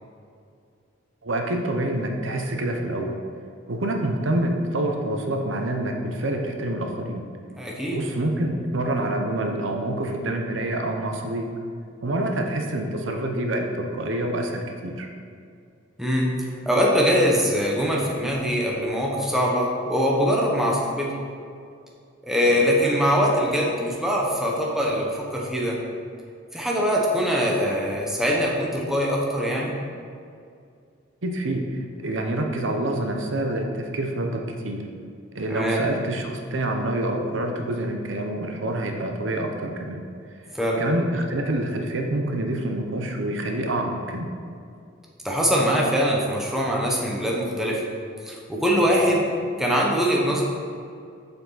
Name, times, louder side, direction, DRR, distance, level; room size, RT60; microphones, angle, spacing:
voice 1, 1.2-3.2 3.7-7.2 7.9-11.5 12.0-15.1 22.5-22.6 31.2-34.9 35.3-40.0 40.8-44.3 49.1-49.2, right 1 dB, 75° right, 3 dB, 0.8 m, -27 dB
voice 2, 7.6-8.0 16.0-16.3 16.6-21.1 22.2-25.8 26.5-29.7 35.5-35.9 40.5-40.8 45.2-47.8 48.2-49.3 49.6-50.4, equal, ahead, -3 dB, 1.0 m, -22 dB
6.8 x 6.8 x 4.0 m, 2.4 s
head